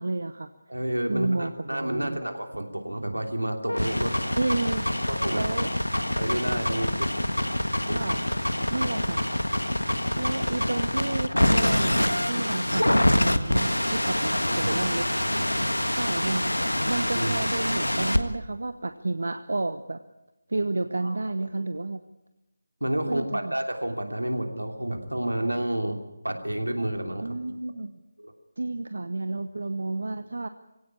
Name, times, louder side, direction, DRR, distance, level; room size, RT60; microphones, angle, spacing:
voice 1, 0.0-0.5 1.1-2.2 4.4-4.9 5.3-5.7 7.9-8.2 8.7-9.2 10.2-15.3 15.9-16.5 16.9-20.0 20.5-22.0 23.0-23.5 27.2-28.0 28.6-30.5, right 2 dB, 60° right, 10 dB, 0.9 m, -31 dB
voice 2, 0.7-4.1 5.0-5.4 6.2-7.2 7.9-8.0 8.3-8.4 8.7-8.9 14.0-14.1 14.5-14.8 15.2-15.4 17.1-17.4 21.0-21.2 22.8-26.0 26.2-27.4 28.2-28.3, right 1 dB, 80° right, 4 dB, 3.1 m, -30 dB
sound 1, 3.7-18.2, left 1 dB, 80° left, 1.6 m, -25 dB
22.5 x 17.0 x 8.5 m, 0.98 s
figure-of-eight pair, 155°, 0 cm